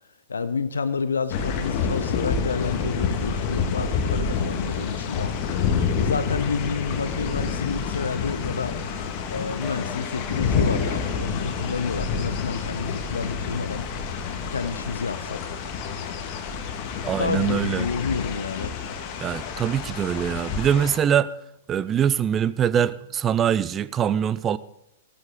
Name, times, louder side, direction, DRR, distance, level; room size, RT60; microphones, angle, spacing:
voice 1, 0.3-5.3 6.0-8.8 9.3-13.8 14.5-15.4 16.9-18.7, left 5 dB, 70° left, 0.8 m, -29 dB
sound 1, 1.3-21.0, left 6 dB, 40° left, 1.8 m, -28 dB
sound 2, 1.8-2.7 3.2-4.5 5.7-6.5 7.4-7.5 8.4-8.5 9.1-13.2 13.5-13.6 16.9-19.7, left 5 dB, 20° left, 2.1 m, -42 dB
sound 3, 16.9-18.3 20.1-21.0 21.3-21.4 21.8-22.1, right 3 dB, 60° right, 4.3 m, -50 dB
voice 2, 17.1-17.9 19.2-21.3 21.7-24.6, right 9 dB, 25° right, 0.5 m, -23 dB
16.5 x 13.0 x 3.8 m
figure-of-eight pair, 100°, 0 cm